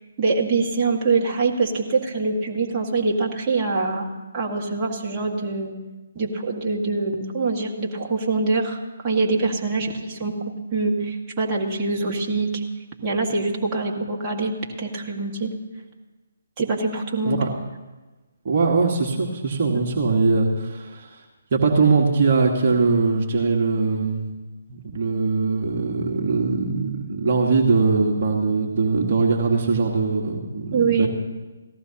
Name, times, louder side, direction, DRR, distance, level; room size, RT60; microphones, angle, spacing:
voice 1, 0.0-4.1 4.3-5.7 6.2-8.8 9.0-10.4 10.7-12.6 13.0-14.5 14.8-15.5 16.6-17.4 30.7-31.1, right 3 dB, 25° right, -3 dB, 1.8 m, -24 dB
voice 2, 18.4-21.2 21.5-24.3 24.7-31.1, right 4 dB, 45° right, 0 dB, 1.5 m, -21 dB
18.0 x 14.5 x 2.9 m, 1.2 s
figure-of-eight pair, 145°, 0 cm